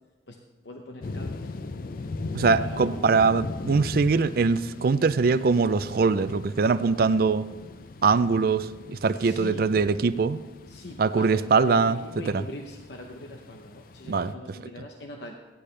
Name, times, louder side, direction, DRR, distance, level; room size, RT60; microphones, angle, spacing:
voice 1, 0.6-1.5 2.6-3.0 9.1-9.7 10.7-15.3, left 1 dB, 70° left, 2 dB, 0.8 m, -41 dB
sound 1, 1.0-14.3, left 3 dB, 50° left, 0.4 m, -39 dB
voice 2, 2.3-7.5 8.0-10.4 11.0-12.4 14.1-14.3, right 4 dB, 55° right, 13 dB, 0.4 m, -22 dB
15.0 x 10.0 x 3.3 m, 1.2 s
head